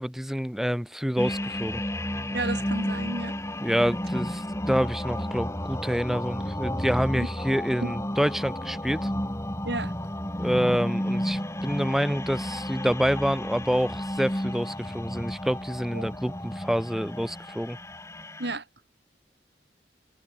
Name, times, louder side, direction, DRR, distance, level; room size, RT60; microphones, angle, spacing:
voice 1, 0.0-1.8 3.6-9.1 10.4-17.8, equal, ahead, 0.7 m, -27 dB
sound 1, 1.2-18.6, left 1 dB, 15° left, 5.0 m, -32 dB
voice 2, 2.3-3.4 7.1-7.3 7.8-7.9 9.6-9.9 15.9-16.0 18.4-18.6, right 2 dB, 75° right, 3.6 m, -32 dB
head